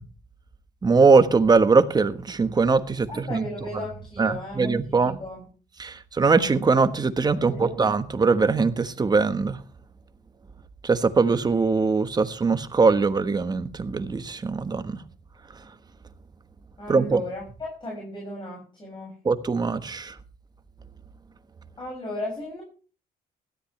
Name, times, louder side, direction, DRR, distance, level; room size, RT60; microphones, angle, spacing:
voice 1, 0.8-3.4 4.2-5.1 5.8-9.6 10.8-15.0 16.9-17.2 19.2-20.1, right 4 dB, 25° right, 1.3 m, -21 dB
voice 2, 3.1-5.5 7.4-7.7 16.8-19.2 21.8-22.6, left 1 dB, 25° left, 6.5 m, -36 dB
17.0 x 13.5 x 3.3 m
cardioid pair, 110°, 17 cm